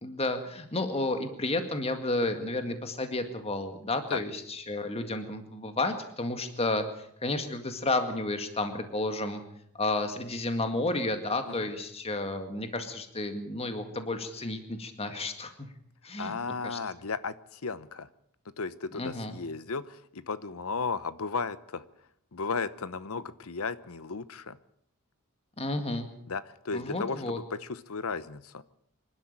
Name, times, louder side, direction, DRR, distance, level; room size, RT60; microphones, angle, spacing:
voice 1, 0.0-9.4 9.7-15.7 16.0-16.3 16.6-16.8 18.9-19.3 25.6-26.1 26.7-27.4, left 2 dB, 30° left, 7 dB, 2.0 m, -31 dB
voice 2, 16.2-18.1 18.6-21.8 22.3-24.6 26.3-28.6, left 4 dB, 70° left, 15 dB, 0.9 m, -35 dB
25.5 x 12.5 x 8.9 m, 0.71 s
head